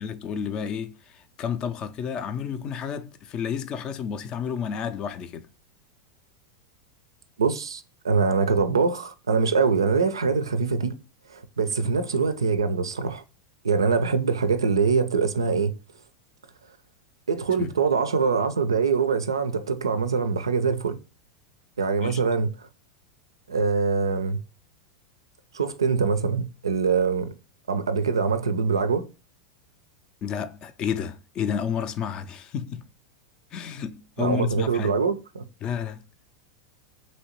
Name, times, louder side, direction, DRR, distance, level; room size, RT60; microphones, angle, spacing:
voice 1, 0.0-5.5 17.6-17.7 22.0-22.2 30.2-32.8 33.5-35.0 35.6-36.0, left 7 dB, 35° left, 0.4 m, -31 dB
voice 2, 7.4-10.9 11.3-13.2 13.6-15.7 17.3-21.0 21.8-22.7 23.5-24.4 25.5-27.3 27.7-29.1 34.2-35.4, right 5 dB, 85° right, 0.4 m, -24 dB
3.1 x 2.7 x 2.8 m
hypercardioid pair, 90°, 2 cm